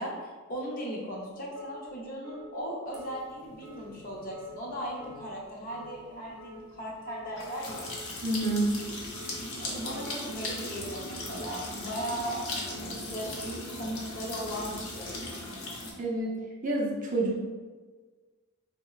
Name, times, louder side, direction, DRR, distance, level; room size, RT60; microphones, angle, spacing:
voice 1, 0.0-7.9 9.6-15.3, equal, 40° left, -3 dB, 0.6 m, -37 dB
sound 1, 1.6-1.8 2.2-2.4 2.9-3.1 3.6-3.8 4.3-4.5 5.0-5.2 5.7-5.9 6.4-6.6 7.1-7.3 7.8-8.0 8.4-8.7 9.1-9.3 9.8-10.0 10.5-10.7 11.2-11.4 11.9-12.1, equal, 85° right, 0.5 m, -49 dB
sound 2, 2.9-15.9, left 2 dB, 85° left, 0.7 m, -39 dB
voice 2, 8.2-8.7 16.0-17.4, right 2 dB, 35° right, -3 dB, 0.5 m, -28 dB
3.9 x 2.1 x 2.3 m, 1.4 s
head